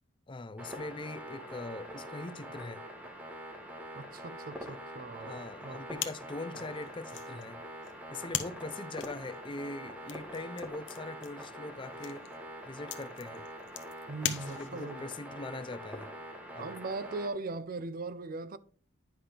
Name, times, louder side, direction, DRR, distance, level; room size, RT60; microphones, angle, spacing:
voice 1, 0.3-2.8 4.7-4.8 5.2-7.6 8.1-12.3 12.6-13.5 14.5-16.1 16.5-16.7, left 2 dB, 25° left, 0.5 m, -42 dB
sound 1, 0.6-17.3, equal, 10° right, 1.5 m, -45 dB
voice 2, 3.9-6.1 14.1-15.0 16.6-18.6, right 3 dB, 45° right, 0.5 m, -39 dB
sound 2, 6.0-15.0, left 10 dB, 65° left, 0.9 m, -41 dB
10.0 x 5.7 x 3.4 m
head